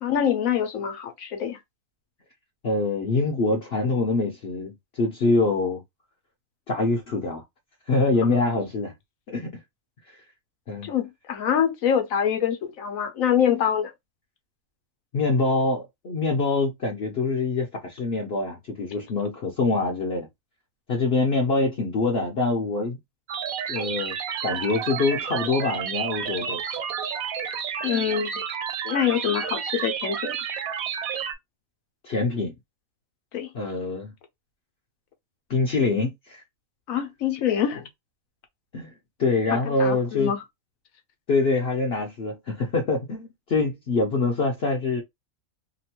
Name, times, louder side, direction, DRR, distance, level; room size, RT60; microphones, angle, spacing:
voice 1, 0.0-1.6 10.8-13.9 27.8-28.3 28.8-30.3 33.3-33.5 36.9-37.9 39.7-40.4, left 9 dB, 75° left, 1.2 m, -25 dB
voice 2, 2.6-5.8 6.7-7.4 7.9-8.9 9.3-9.6 10.7-10.9 15.1-20.3 20.9-23.0 23.7-24.1 24.4-26.6 32.0-32.5 33.5-34.1 35.5-36.4 38.7-38.9 39.2-40.3 41.3-45.0, left 3 dB, 50° left, 0.9 m, -25 dB
sound 1, 23.3-31.3, right 7 dB, 80° right, 1.1 m, -30 dB
2.9 x 2.5 x 2.8 m
omnidirectional pair, 1.5 m